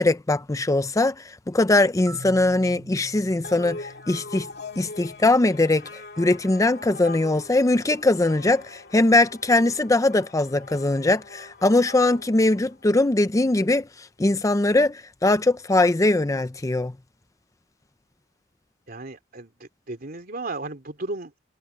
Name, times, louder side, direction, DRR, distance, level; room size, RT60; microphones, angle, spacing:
voice 1, 0.0-4.5 4.8-16.9, left 2 dB, 15° left, 0.5 m, -21 dB
Marimba xylophone, 2.1-5.9, right 1 dB, 80° right, 6.0 m, -46 dB
sound 1, 3.4-13.2, left 3 dB, 55° left, 2.4 m, -42 dB
voice 2, 18.9-21.4, right 2 dB, 50° right, 3.0 m, -35 dB
head